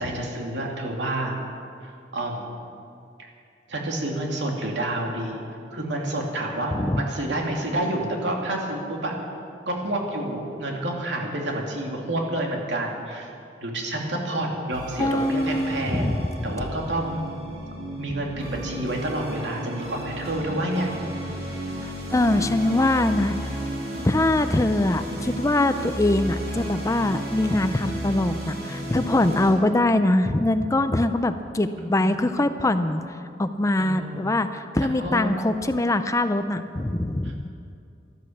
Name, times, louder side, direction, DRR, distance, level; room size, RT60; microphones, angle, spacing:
voice 1, 0.0-1.4 1.8-2.6 3.2-3.3 3.7-5.4 5.7-9.1 9.7-13.3 13.6-17.3 18.0-20.9 31.8-32.2 33.8-34.3 34.8-35.3, right 1 dB, 85° right, 0 dB, 2.6 m, -29 dB
voice 2, 6.7-7.0 15.0-16.6 21.8-23.6 24.0-37.5, left 1 dB, 15° left, 10 dB, 0.5 m, -23 dB
sound 1, 14.7-29.5, right 1 dB, 60° right, 4.7 m, -33 dB
13.0 x 12.5 x 7.3 m, 2.5 s
head